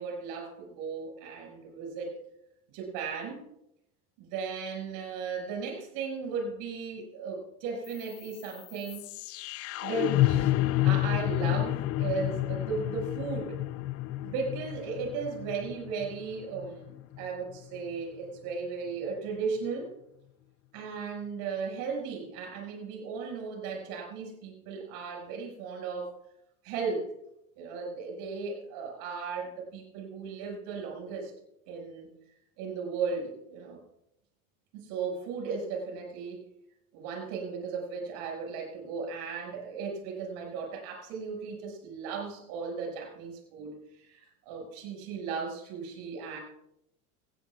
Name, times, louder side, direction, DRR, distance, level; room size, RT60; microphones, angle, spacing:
voice 1, 0.0-2.1 2.7-3.4 4.2-9.0 9.8-13.6 14.2-19.9 20.7-26.2 26.6-27.1 27.6-31.3 31.7-32.1 32.6-33.8 34.7-36.4 36.9-46.4, right 5 dB, 65° right, 0 dB, 6.1 m, -36 dB
sound 1, 7.9-17.9, left 14 dB, 35° left, 0.4 m, -30 dB
18.0 x 16.5 x 2.4 m, 0.80 s
supercardioid pair, 115°, 42 cm